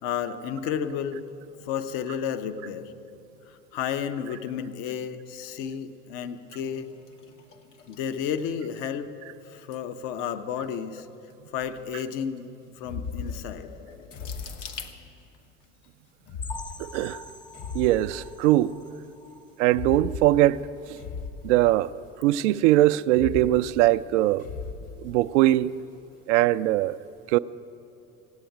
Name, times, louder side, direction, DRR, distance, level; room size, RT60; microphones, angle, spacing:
voice 1, 0.0-1.2 1.6-2.9 3.5-6.9 7.9-9.1 9.4-11.1 11.5-12.5 12.8-13.7, left 8 dB, 60° left, 1.0 m, -32 dB
sound 1, 6.5-15.7 16.3-16.9 17.3-17.6, left 6 dB, 80° left, 1.3 m, -48 dB
sound 2, 11.6-11.8 12.8-15.3 16.2-18.8 19.6-22.2 23.1-25.6, left 5 dB, 40° left, 1.3 m, -38 dB
sound 3, 16.4-20.0 20.4-20.6 21.0-21.1 21.5-21.6, left 2 dB, 15° left, 0.4 m, -45 dB
voice 2, 16.8-17.2 17.7-18.8 19.6-21.0 21.4-21.9 22.2-24.4 25.0-25.7 26.3-27.0 27.3-27.4, right 15 dB, 70° right, 0.5 m, -21 dB
17.0 x 8.5 x 9.1 m
hypercardioid pair, 75°, 37 cm